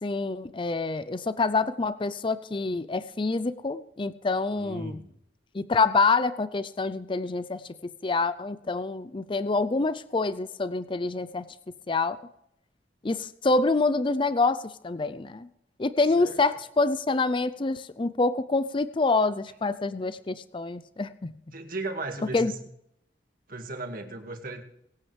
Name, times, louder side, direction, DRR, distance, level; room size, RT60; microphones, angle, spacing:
voice 1, 0.0-5.0 5.5-11.5 11.9-12.2 13.0-15.5 15.8-21.3 22.3-22.5, left 3 dB, 25° left, 14 dB, 0.5 m, -26 dB
voice 2, 4.5-5.1 16.2-16.4 21.5-22.6 23.5-24.6, right 2 dB, 50° right, 4 dB, 2.0 m, -36 dB
22.5 x 8.9 x 3.3 m, 0.78 s
head